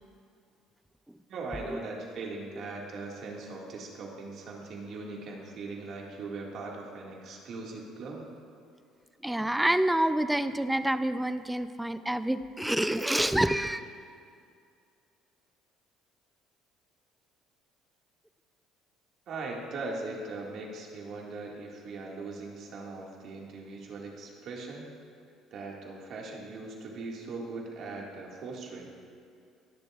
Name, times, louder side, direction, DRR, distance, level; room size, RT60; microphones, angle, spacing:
voice 1, 1.3-8.2 19.3-24.9 25.5-28.9, right 3 dB, 60° right, -1 dB, 1.9 m, -40 dB
voice 2, 9.2-13.8, right 1 dB, 5° right, 12 dB, 0.4 m, -27 dB
20.0 x 6.9 x 2.4 m, 2.3 s
supercardioid pair, 80°, 0 cm